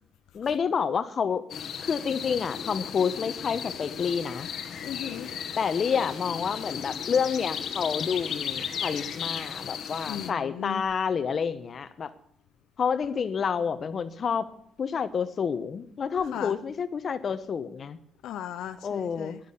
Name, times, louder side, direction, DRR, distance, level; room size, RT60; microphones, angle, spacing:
voice 1, 0.3-1.4 1.8-4.5 5.6-12.1 12.8-14.5 14.8-18.0 18.8-19.3, left 6 dB, 50° left, 1.0 m, -29 dB
sound 1, 1.5-10.3, left 8 dB, 65° left, 1.3 m, -35 dB
voice 2, 4.8-5.3 10.0-10.8 16.3-16.5 18.2-19.4, left 10 dB, 85° left, 0.7 m, -37 dB
10.5 x 9.6 x 8.4 m
cardioid pair, 90°, 0 cm